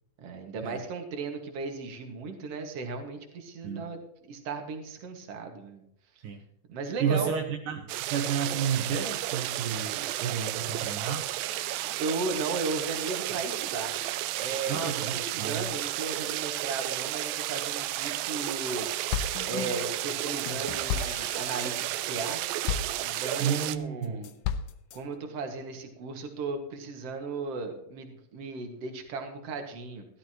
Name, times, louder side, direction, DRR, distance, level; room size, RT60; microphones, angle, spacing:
voice 1, 0.2-4.0 4.3-5.8 6.7-7.3 11.8-14.0 14.4-18.9 19.1-22.4 23.0-24.3 24.9-30.1, right 4 dB, 50° right, 4 dB, 2.6 m, -36 dB
voice 2, 7.0-11.3 14.7-15.6 23.4-24.2, right 7 dB, 75° right, 4 dB, 2.4 m, -31 dB
sound 1, 7.9-23.8, right 14 dB, 90° right, 2.4 m, -32 dB
sound 2, 18.2-18.8 19.1-23.6 24.0-25.0, left 8 dB, 75° left, 2.3 m, -35 dB
16.5 x 12.5 x 3.0 m, 0.78 s
omnidirectional pair, 4.0 m